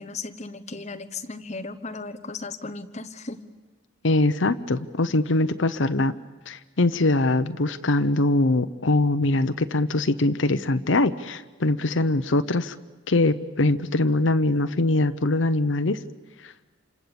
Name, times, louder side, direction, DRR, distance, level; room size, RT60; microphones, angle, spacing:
voice 1, 0.0-3.4, left 3 dB, 35° left, 10 dB, 1.1 m, -36 dB
voice 2, 4.0-6.1 6.5-12.7 13.1-16.0 16.4-16.5, left 2 dB, 70° left, 9 dB, 0.9 m, -22 dB
28.5 x 26.5 x 7.1 m, 1.3 s
head